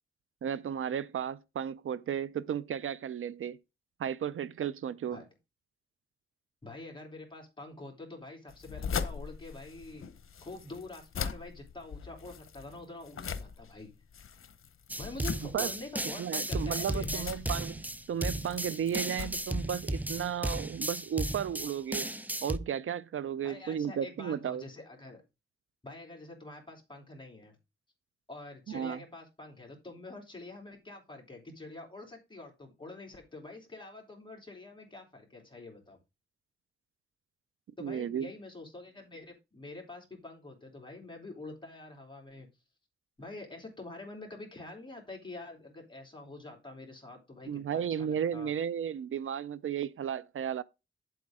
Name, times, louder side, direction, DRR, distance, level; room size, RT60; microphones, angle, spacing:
voice 1, 0.4-3.6 4.0-5.2 15.5-15.7 16.2-17.8 18.1-22.1 22.4-24.6 28.7-29.0 37.8-38.3 47.5-50.6, right 8 dB, 75° right, 0.5 m, -34 dB
voice 2, 6.6-10.0 10.4-13.9 14.3-14.4 15.0-17.4 23.4-25.2 25.8-27.6 28.3-36.0 37.8-42.5 43.2-48.5, left 2 dB, 20° left, 3.1 m, -46 dB
sound 1, 8.5-20.2, left 6 dB, 80° left, 0.8 m, -41 dB
sound 2, 14.9-22.6, right 1 dB, 10° right, 0.5 m, -35 dB
8.7 x 7.8 x 3.6 m
wide cardioid pair, 125°, 21 cm